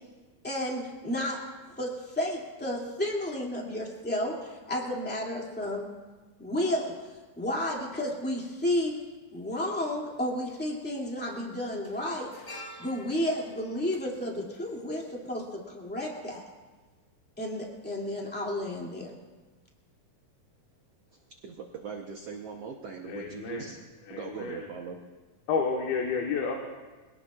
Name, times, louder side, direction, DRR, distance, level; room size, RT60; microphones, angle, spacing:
voice 1, 0.4-1.4 1.8-5.9 6.4-6.9 7.4-8.9 9.3-12.3 12.8-16.4 17.4-19.1, left 1 dB, 5° left, -2 dB, 1.5 m, -32 dB
sound 1, 9.3-9.4 10.7-10.9 11.2-15.5 15.8-15.9, left 1 dB, 30° left, 3.2 m, -49 dB
voice 2, 21.4-23.8 24.1-25.0, right 6 dB, 80° right, 2 dB, 1.4 m, -40 dB
voice 3, 23.0-23.7 24.1-24.7 25.5-26.6, left 5 dB, 90° left, 0 dB, 3.1 m, -30 dB
25.0 x 18.0 x 2.4 m, 1.3 s
omnidirectional pair, 4.2 m